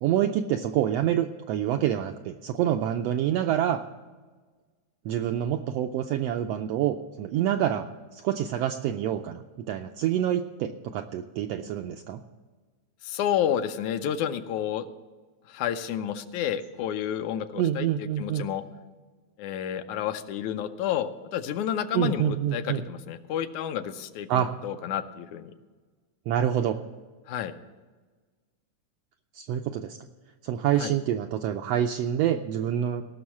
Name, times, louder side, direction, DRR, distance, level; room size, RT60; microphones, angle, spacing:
voice 1, 0.0-3.8 5.0-12.2 17.6-18.5 21.9-22.9 24.3-24.5 26.3-26.8 29.3-30.0 30.4-33.1, right 10 dB, 90° right, 6 dB, 1.4 m, -27 dB
voice 2, 13.0-14.9 15.5-18.6 19.4-25.5 27.3-27.5 30.8-30.9, left 9 dB, 80° left, 9 dB, 2.0 m, -30 dB
18.0 x 6.2 x 7.2 m, 1.4 s
omnidirectional pair, 3.4 m